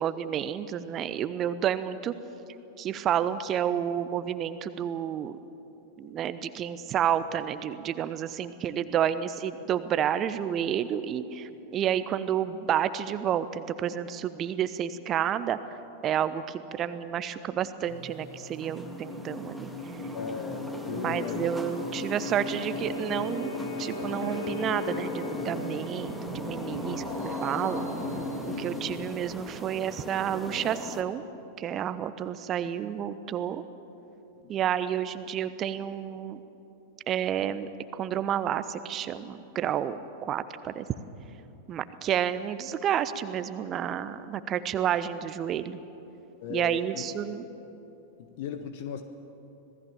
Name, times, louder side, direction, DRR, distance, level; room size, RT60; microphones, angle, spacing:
voice 1, 0.0-2.1 2.8-5.3 6.0-15.6 16.0-19.7 20.9-27.9 28.5-31.2 31.6-33.6 34.5-36.4 37.1-40.9 41.7-45.8 46.5-47.4, right 9 dB, 30° right, 13 dB, 1.0 m, -30 dB
sound 1, 17.8-31.0, equal, 5° left, 2.3 m, -40 dB
sound 2, 17.9-29.3, left 3 dB, 75° left, 2.8 m, -37 dB
voice 2, 20.1-21.4 28.5-28.7 46.4-47.0 48.2-49.0, left 7 dB, 50° left, 8 dB, 1.3 m, -37 dB
26.0 x 19.0 x 7.3 m, 2.9 s
figure-of-eight pair, 90°, 0 cm